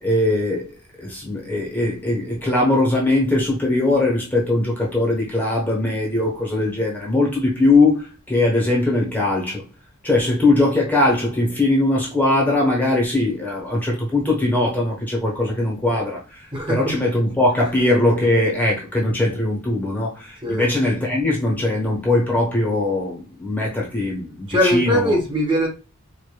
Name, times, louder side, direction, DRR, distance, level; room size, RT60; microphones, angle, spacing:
voice 1, 0.0-9.6 10.0-25.1, left 2 dB, 10° left, 1.0 m, -20 dB
voice 2, 16.5-16.9 20.4-20.6 24.5-25.7, equal, 20° right, 1.2 m, -20 dB
4.9 x 2.5 x 2.2 m
head